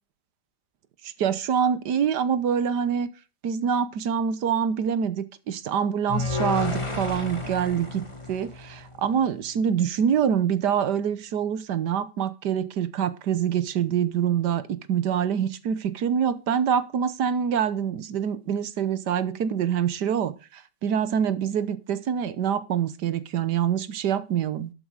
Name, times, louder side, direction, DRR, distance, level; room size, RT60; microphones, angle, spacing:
voice 1, 1.0-3.1 3.4-24.7, right 8 dB, 70° right, 14 dB, 1.5 m, -25 dB
sound 1, 6.1-9.3, left 3 dB, 15° left, 1.8 m, -31 dB
12.0 x 8.0 x 4.8 m, 0.32 s
omnidirectional pair, 1.9 m